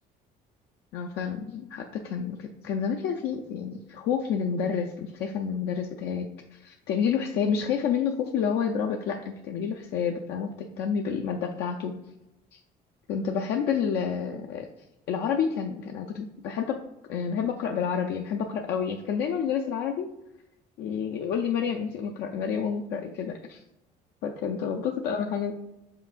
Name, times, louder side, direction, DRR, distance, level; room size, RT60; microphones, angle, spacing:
voice 1, 0.9-11.9 12.5-12.6 13.1-14.7 15.1-16.8 17.1-20.1 20.8-23.6 24.2-25.5, left 7 dB, 75° left, 2 dB, 0.4 m, -29 dB
5.6 x 3.7 x 2.4 m, 0.94 s
cardioid pair, 110°, 17 cm